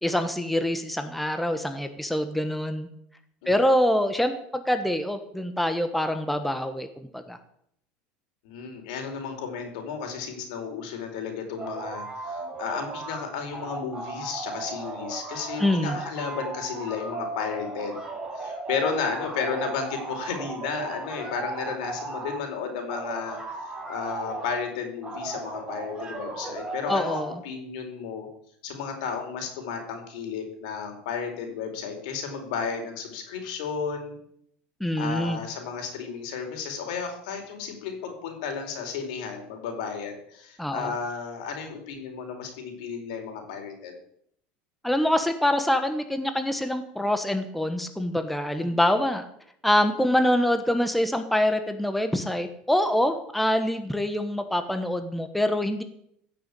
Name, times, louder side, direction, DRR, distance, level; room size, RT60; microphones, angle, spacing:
voice 1, 0.0-2.9 3.5-6.9 7.1-7.4 15.6-16.0 26.9-27.4 34.8-35.4 40.6-40.9 44.8-49.3 49.6-55.8, left 1 dB, ahead, 8 dB, 1.2 m, -25 dB
voice 2, 8.4-18.0 18.3-28.3 28.6-34.2 35.0-43.9 48.6-48.8, left 6 dB, 80° left, 4 dB, 4.7 m, -33 dB
sound 1, 11.6-13.2 13.5-22.4 22.9-24.6 25.0-27.3, right 3 dB, 15° right, 4.4 m, -36 dB
16.0 x 7.0 x 8.4 m, 0.70 s
supercardioid pair, 140°, 4 cm